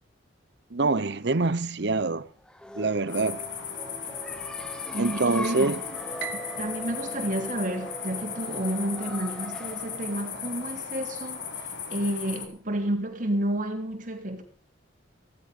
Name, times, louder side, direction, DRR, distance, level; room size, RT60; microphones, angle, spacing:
voice 1, 0.7-2.3 2.8-3.4 5.0-5.8, right 3 dB, 60° right, 0.8 m, -25 dB
sound 1, 2.4-11.9, equal, 5° left, 0.7 m, -41 dB
sound 2, 3.1-12.5, left 7 dB, 75° left, 3.0 m, -37 dB
voice 2, 4.9-5.8 6.3-14.5, right 1 dB, 40° right, 3.2 m, -31 dB
Piano, 6.2-8.5, right 8 dB, 85° right, 1.2 m, -42 dB
16.5 x 15.0 x 5.1 m
head